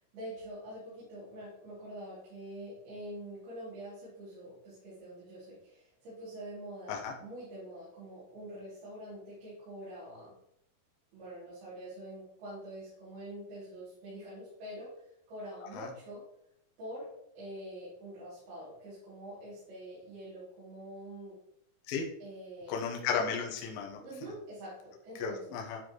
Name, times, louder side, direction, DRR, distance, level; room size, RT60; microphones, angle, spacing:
voice 1, 0.1-10.3 11.1-16.2 16.8-21.4 22.2-22.8 24.0-25.6, right 1 dB, 65° right, -11 dB, 4.5 m, -45 dB
voice 2, 22.7-24.0 25.2-25.8, left 6 dB, 70° left, 0 dB, 2.5 m, -34 dB
12.0 x 4.3 x 3.0 m, 0.76 s
omnidirectional pair, 5.1 m